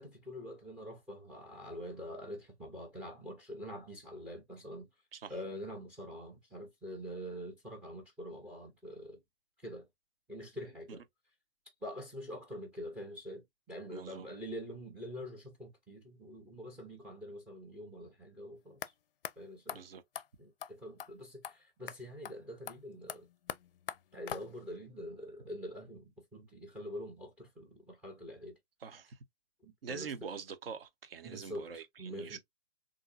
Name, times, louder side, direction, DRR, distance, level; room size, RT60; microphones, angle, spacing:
voice 1, 0.0-4.9 5.3-9.2 9.6-9.9 10.3-11.0 11.8-18.8 19.4-19.8 20.4-23.3 24.1-28.6 29.6-30.1 31.2-32.4, equal, 5° right, 0.4 m, -45 dB
voice 2, 13.9-14.3 19.7-20.0 28.8-29.2 29.8-32.4, right 6 dB, 60° right, 0.9 m, -44 dB
sound 1, 18.8-18.9 19.2-19.3 19.7-19.8 20.2-20.3 20.6-20.7 21.0-21.1 21.4-21.6 21.9-22.0 22.2-22.4 22.7-24.8, left 9 dB, 60° left, 0.4 m, -43 dB
3.6 x 2.7 x 2.5 m
figure-of-eight pair, 130°, 33 cm